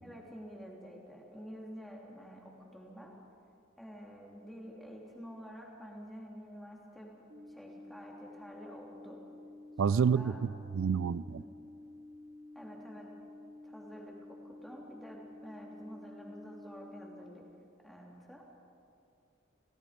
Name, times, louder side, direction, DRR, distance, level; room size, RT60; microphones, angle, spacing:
voice 1, 0.0-3.1 3.8-7.1 7.5-9.2 9.8-10.4 11.4-11.5 12.5-13.1 13.6-14.2 14.4-17.4 17.8-18.4, equal, ahead, 3.0 m, -49 dB
sound 1, 7.3-17.3, left 2 dB, 40° right, 3.8 m, -51 dB
voice 2, 9.8-11.4, right 6 dB, 85° right, 0.4 m, -29 dB
29.5 x 18.5 x 5.2 m
head